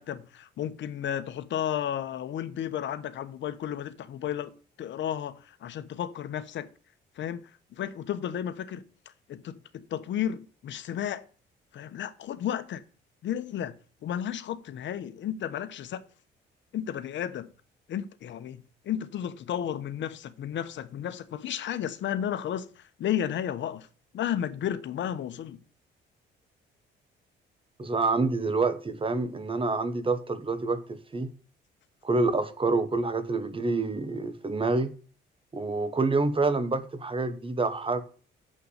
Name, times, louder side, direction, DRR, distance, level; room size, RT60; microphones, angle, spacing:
voice 1, 0.0-6.7 7.2-7.5 7.8-8.8 9.3-11.2 11.7-12.8 13.2-13.7 14.0-16.0 16.7-17.5 17.9-23.9 24.1-25.6, left 10 dB, 70° left, 1.1 m, -33 dB
voice 2, 27.8-31.3 32.0-34.9 35.5-38.0, right 3 dB, 25° right, 1.4 m, -27 dB
7.7 x 5.8 x 6.6 m
cardioid pair, 90°, 20 cm